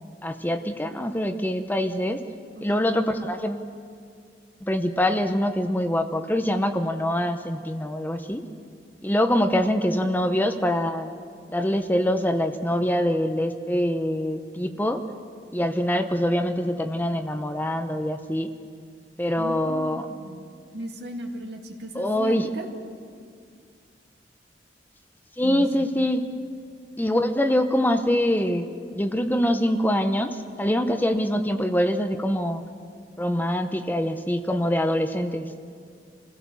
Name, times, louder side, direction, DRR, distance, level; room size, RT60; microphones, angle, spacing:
voice 1, 0.2-2.2 2.6-3.7 4.6-8.4 9.0-11.1 11.5-15.0 15.5-18.5 19.2-20.1 21.9-22.5 25.4-26.3 27.0-28.7 28.9-32.6 33.2-35.5, equal, 10° left, 7 dB, 0.8 m, -24 dB
voice 2, 19.4-20.4 20.7-22.7 25.4-25.7, right 1 dB, 65° right, 2 dB, 2.3 m, -37 dB
27.0 x 16.5 x 7.2 m, 2.2 s
head